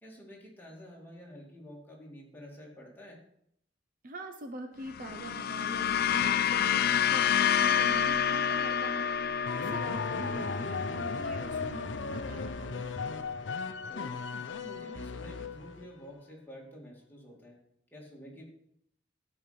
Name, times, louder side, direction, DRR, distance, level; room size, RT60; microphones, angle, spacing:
voice 1, 0.0-3.2 9.6-9.8 13.9-14.2 14.6-17.6 17.9-18.4, equal, 10° left, -3 dB, 2.6 m, -49 dB
voice 2, 4.0-9.4 9.7-13.2, right 2 dB, 50° right, 6 dB, 0.9 m, -44 dB
sound 1, 4.9-13.3, left 8 dB, 55° left, 0.4 m, -29 dB
sound 2, 9.5-15.9, left 4 dB, 85° left, 0.7 m, -36 dB
12.5 x 5.1 x 5.9 m, 0.72 s
head